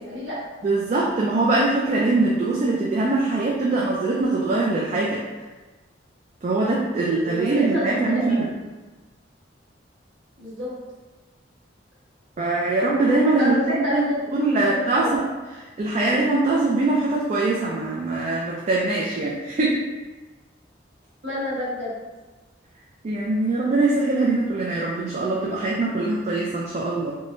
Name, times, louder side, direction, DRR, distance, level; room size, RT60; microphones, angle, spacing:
voice 1, 0.0-0.4 6.9-8.6 10.4-10.8 13.4-15.2 21.2-22.0, left 1 dB, 75° right, -8 dB, 1.2 m, -29 dB
voice 2, 0.6-5.2 6.4-8.5 12.4-14.0 14.3-15.3 15.8-19.8 23.0-27.2, right 2 dB, 35° right, -4 dB, 0.3 m, -22 dB
3.6 x 2.1 x 2.5 m, 1.2 s
head